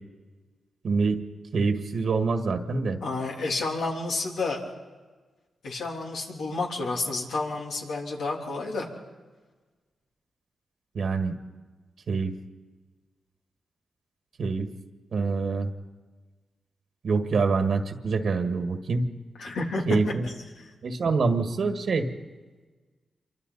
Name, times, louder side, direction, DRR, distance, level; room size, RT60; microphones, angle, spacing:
voice 1, 0.8-1.2 1.5-3.0 10.9-11.4 12.1-12.3 14.4-14.7 15.1-15.7 17.0-19.1 19.8-20.2 20.8-22.1, right 4 dB, 70° right, 6 dB, 1.7 m, -25 dB
voice 2, 3.0-4.6 5.6-8.9 19.4-19.8 20.2-20.7, left 3 dB, 90° left, -1 dB, 3.4 m, -30 dB
27.0 x 24.0 x 4.1 m, 1.3 s
cardioid pair, 65°, 0 cm